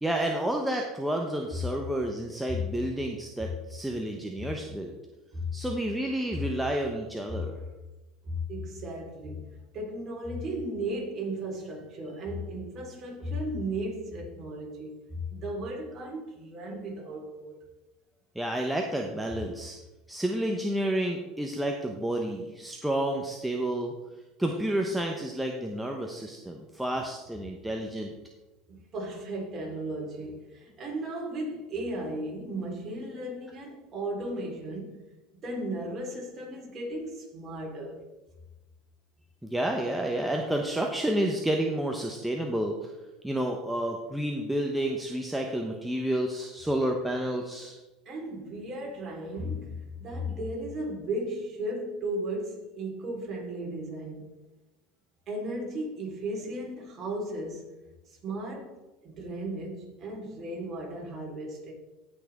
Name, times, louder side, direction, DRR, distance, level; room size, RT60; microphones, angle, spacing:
voice 1, 0.0-4.9 5.5-7.6 18.3-19.8 20.1-23.9 24.4-28.1 39.4-42.9 43.2-47.8, right 1 dB, 5° right, 0.9 m, -30 dB
voice 2, 8.2-9.4 9.7-17.6 28.7-35.0 35.3-38.0 48.1-54.3 55.3-57.8 58.1-58.8 59.0-61.7, right 1 dB, 35° right, 3.9 m, -35 dB
17.0 x 6.1 x 3.6 m
supercardioid pair, 120°, 0 cm